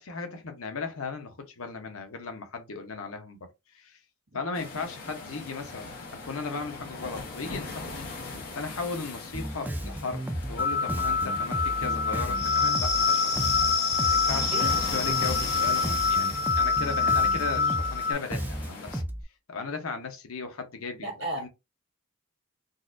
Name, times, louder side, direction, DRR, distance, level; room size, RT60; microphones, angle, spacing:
voice 1, 0.0-3.5 3.7-4.0 4.3-8.1 8.5-13.4 14.1-19.0 19.5-21.5, left 4 dB, 90° left, 0.9 m, -36 dB
sound 1, 4.5-19.0, left 3 dB, 45° left, 1.2 m, -41 dB
Bass guitar, 9.3-19.2, right 1 dB, 10° right, 0.3 m, -34 dB
sound 2, 10.6-18.1, left 5 dB, 65° left, 1.8 m, -26 dB
voice 2, 21.0-21.5, right 1 dB, 60° right, 1.6 m, -35 dB
3.9 x 2.4 x 2.5 m
head